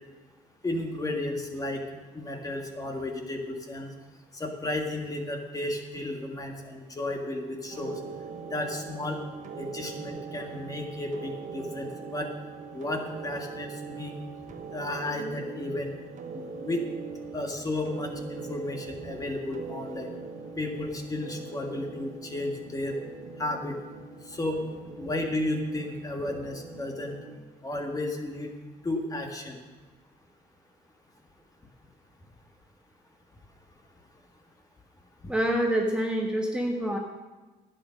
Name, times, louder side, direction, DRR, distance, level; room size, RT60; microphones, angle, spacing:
voice 1, 0.6-1.8 2.1-3.9 4.3-8.0 8.5-9.2 9.6-12.3 12.7-14.1 14.7-15.9 16.3-16.8 17.3-20.1 20.6-23.0 23.4-23.8 24.3-24.6 25.0-27.2 27.6-28.5 28.8-29.6 35.2-35.3, left 1 dB, 20° left, 3 dB, 1.7 m, -33 dB
sound 1, 7.7-27.4, right 4 dB, 45° right, 1.1 m, -41 dB
voice 2, 35.3-37.0, right 1 dB, 5° right, 0 dB, 1.4 m, -26 dB
11.5 x 8.8 x 6.4 m, 1.2 s
cardioid pair, 110°, 17 cm